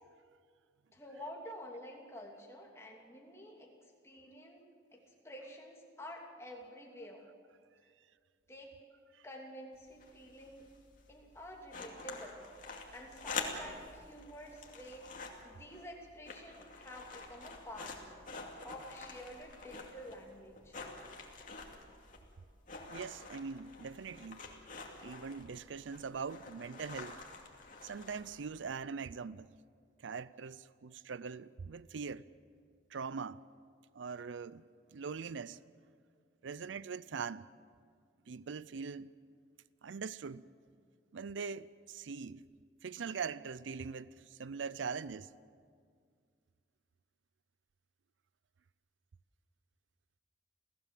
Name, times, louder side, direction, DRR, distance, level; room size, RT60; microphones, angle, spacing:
voice 1, 0.9-3.7 4.0-7.2 8.5-8.8 9.2-10.7 11.1-12.4 12.9-15.1 15.4-18.0 18.6-20.8, equal, 15° left, 2.8 m, -49 dB
sound 1, 9.7-28.6, left 4 dB, 45° left, 2.5 m, -47 dB
voice 2, 22.9-24.4 25.0-27.2 27.8-29.5 30.0-32.3 32.9-33.4 33.9-35.6 36.4-37.5 38.3-39.1 39.8-40.5 41.1-42.4 42.8-45.3, right 5 dB, 80° right, 0.5 m, -42 dB
28.5 x 16.5 x 7.5 m
head